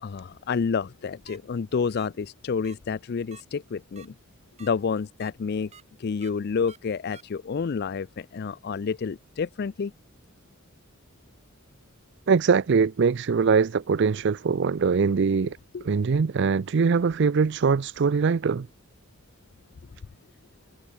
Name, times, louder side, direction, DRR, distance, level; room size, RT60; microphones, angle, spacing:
voice 1, 0.0-4.1 4.6-5.7 6.0-9.9 15.4-15.9, left 5 dB, 50° left, 0.4 m, -29 dB
sound 1, 1.3-1.4 2.0-2.1 2.6-2.8 3.3-3.4 4.0-4.1 4.6-4.7 5.2-5.3 5.7-5.8 6.2-6.3 6.7-6.8 7.1-7.2, right 6 dB, 30° right, 2.1 m, -48 dB
voice 2, 12.3-15.6 15.9-18.7, right 5 dB, 55° right, 0.4 m, -22 dB
head